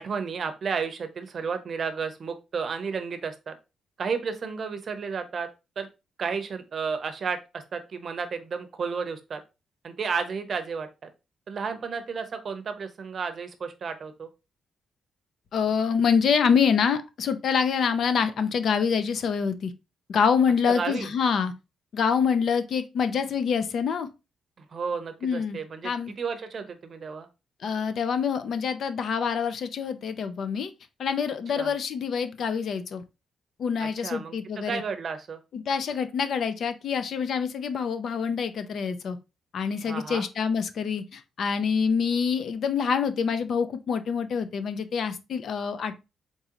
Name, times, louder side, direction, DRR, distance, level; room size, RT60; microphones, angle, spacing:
voice 1, 0.0-3.5 4.0-5.5 5.8-5.9 6.2-9.4 9.8-11.1 11.5-14.3 20.6-21.1 24.6-25.9 26.2-27.3 31.5-31.7 33.8-35.4 39.9-40.3, right 5 dB, 40° right, 0.7 m, -32 dB
voice 2, 15.5-19.7 20.1-21.5 21.9-24.1 25.2-25.6 25.8-26.1 27.6-30.7 31.0-33.0 33.6-34.8 35.5-39.2 39.5-45.9, left 6 dB, 55° left, 0.5 m, -26 dB
4.1 x 3.7 x 2.9 m
cardioid pair, 150°, 0 cm